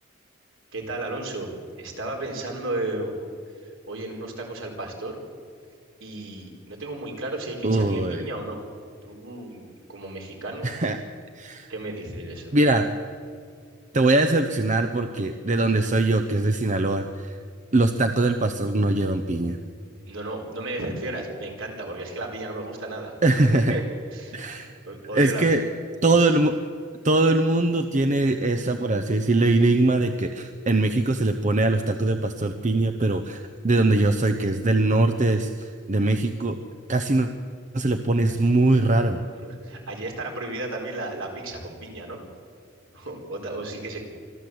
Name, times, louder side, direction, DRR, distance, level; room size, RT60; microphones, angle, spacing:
voice 1, 0.7-1.5 1.8-3.1 3.6-5.2 6.0-8.6 9.0-10.7 11.7-12.5 20.1-23.1 23.5-23.8 24.1-25.4 26.0-26.1 39.4-42.2 42.9-44.1, right 2 dB, 70° right, 1 dB, 4.3 m, -34 dB
voice 2, 7.6-8.3 10.6-11.0 11.3-11.7 12.5-12.9 13.9-17.4 17.7-19.6 23.2-23.8 24.3-24.7 25.1-25.6 26.0-26.5 27.0-36.6 36.9-37.3 37.7-39.2, right 2 dB, 35° right, 7 dB, 0.8 m, -22 dB
25.0 x 13.5 x 7.9 m, 2.2 s
head